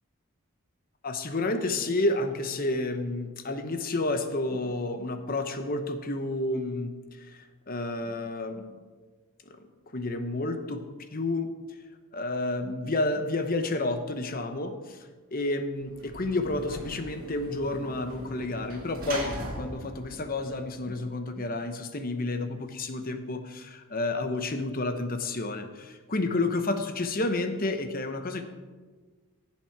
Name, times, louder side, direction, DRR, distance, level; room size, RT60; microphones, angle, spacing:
voice 1, 1.0-6.9 7.2-8.8 9.5-9.6 9.9-10.8 11.1-11.5 12.1-28.4, left 2 dB, 40° left, 8 dB, 0.9 m, -30 dB
Sliding door / Slam, 15.8-21.2, right 1 dB, 40° right, 2.3 m, -40 dB
16.0 x 7.4 x 4.7 m, 1.4 s
head